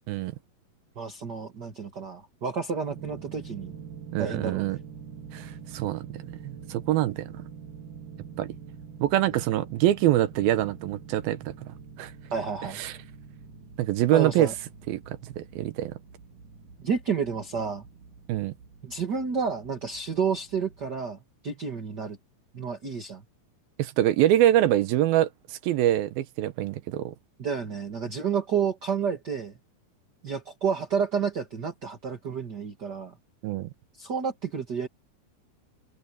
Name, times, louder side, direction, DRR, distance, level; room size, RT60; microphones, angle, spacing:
voice 1, 1.0-3.7 4.2-4.7 12.3-12.8 14.1-14.5 16.8-17.9 18.8-21.2 21.4-22.2 22.5-23.2 27.4-29.5 30.2-33.1 34.0-34.9, right 6 dB, 35° right, 1.8 m, -30 dB
sound 1, 2.9-21.0, right 6 dB, 55° right, 4.1 m, -45 dB
voice 2, 4.1-4.8 5.3-6.0 6.4-7.3 8.4-8.5 9.0-11.5 12.0-12.1 12.7-12.9 13.8-14.5 14.9-15.9 18.3-18.5 23.8-27.1 33.4-33.7, right 13 dB, 75° right, 2.6 m, -24 dB
omnidirectional pair, 4.6 m